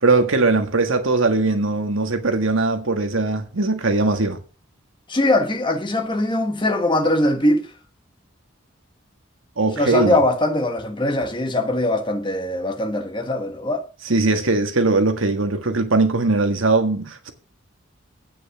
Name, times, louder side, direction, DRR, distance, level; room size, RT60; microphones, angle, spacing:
voice 1, 0.0-4.4 9.6-10.2 14.0-17.3, right 3 dB, 75° right, 1.6 m, -20 dB
voice 2, 5.1-7.7 9.8-13.8, left 1 dB, 25° left, 1.4 m, -21 dB
9.0 x 6.4 x 7.1 m
head